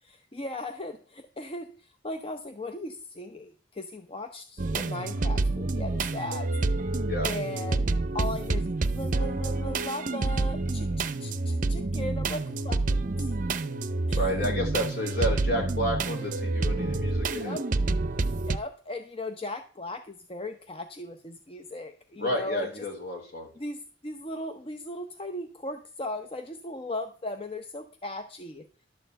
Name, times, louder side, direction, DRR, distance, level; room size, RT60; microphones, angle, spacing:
voice 1, 0.0-6.5 7.2-7.9 8.1-12.8 13.2-13.3 14.1-14.3 17.4-17.6 18.4-22.8 23.6-28.7, left 1 dB, 30° left, 7 dB, 0.7 m, -37 dB
sound 1, 4.6-18.6, right 2 dB, 45° right, 0.6 m, -28 dB
voice 2, 14.1-17.5 22.2-23.5, equal, 60° left, 0 dB, 3.8 m, -30 dB
11.5 x 4.4 x 7.8 m, 0.43 s
head